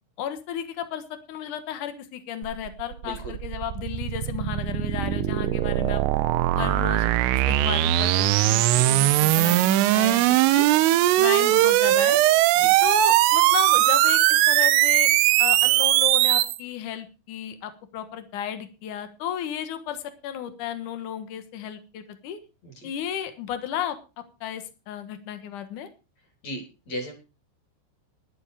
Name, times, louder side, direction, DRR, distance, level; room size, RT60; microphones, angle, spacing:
voice 1, 0.2-6.0 6.6-7.1 7.5-10.2 10.5-10.7 11.2-12.2 12.8-15.1 15.4-22.4 22.8-24.0 24.4-25.9, left 9 dB, 75° left, 10 dB, 1.8 m, -33 dB
sound 1, 2.4-16.6, right 15 dB, 80° right, 3.3 m, -20 dB
voice 2, 3.0-3.3 8.7-8.9 12.5-12.8 22.6-22.9 26.4-27.1, equal, 35° left, 4 dB, 4.2 m, -36 dB
12.5 x 11.5 x 4.9 m, 0.31 s
omnidirectional pair, 5.8 m